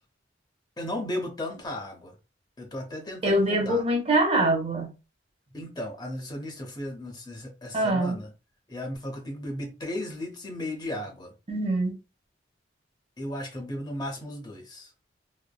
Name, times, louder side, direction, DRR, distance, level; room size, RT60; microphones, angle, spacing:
voice 1, 0.8-2.2 2.6-3.8 5.5-8.3 8.7-11.3 13.2-14.9, left 1 dB, 20° left, 0.6 m, -35 dB
voice 2, 3.2-4.9 7.7-8.2 11.5-12.0, right 1 dB, 30° right, 0.6 m, -24 dB
3.2 x 2.0 x 2.2 m
head